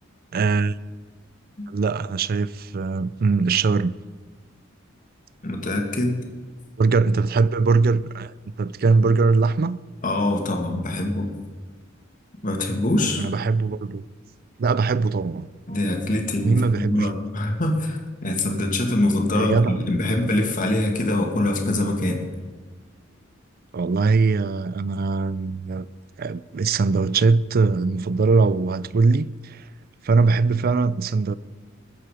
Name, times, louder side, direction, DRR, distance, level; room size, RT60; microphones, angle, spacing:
voice 1, 0.3-0.7 1.7-3.9 6.8-9.8 13.2-14.0 14.6-15.5 16.4-17.2 19.3-19.8 23.7-25.9 26.2-29.7 30.0-31.3, right 4 dB, 50° right, 0.4 m, -21 dB
voice 2, 5.4-6.1 10.0-11.3 12.4-13.2 15.7-16.6 16.9-19.5 19.9-22.2, left 1 dB, 40° left, 2.1 m, -23 dB
21.0 x 7.7 x 5.0 m
head